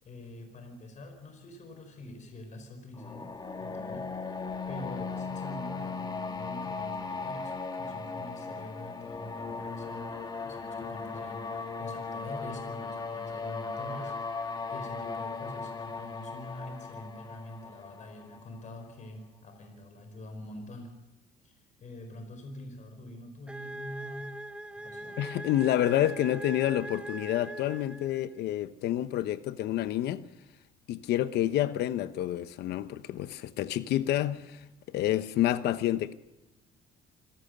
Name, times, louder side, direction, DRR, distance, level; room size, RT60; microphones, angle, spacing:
voice 1, 0.0-3.3 3.6-4.3 4.7-14.4 14.7-20.9 21.4-24.3 24.7-25.2, left 1 dB, 45° left, 5.1 m, -45 dB
sound 1, 3.0-18.8, left 4 dB, 25° left, 2.4 m, -37 dB
sound 2, 23.5-28.3, right 1 dB, 5° right, 0.8 m, -41 dB
voice 2, 25.2-30.2 30.9-36.1, left 13 dB, 75° left, 1.0 m, -29 dB
26.0 x 17.5 x 6.7 m
cardioid pair, 110°, 17 cm